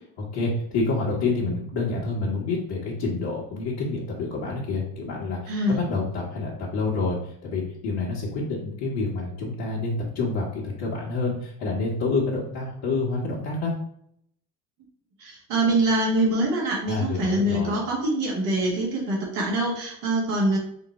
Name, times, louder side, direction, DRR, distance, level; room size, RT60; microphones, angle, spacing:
voice 1, 0.3-13.8 16.8-17.8, left 3 dB, 60° left, -5 dB, 1.4 m, -28 dB
voice 2, 5.5-5.8 15.2-20.6, right 1 dB, 80° right, -1 dB, 1.6 m, -24 dB
5.2 x 2.1 x 4.1 m, 0.70 s
hypercardioid pair, 75°, 48 cm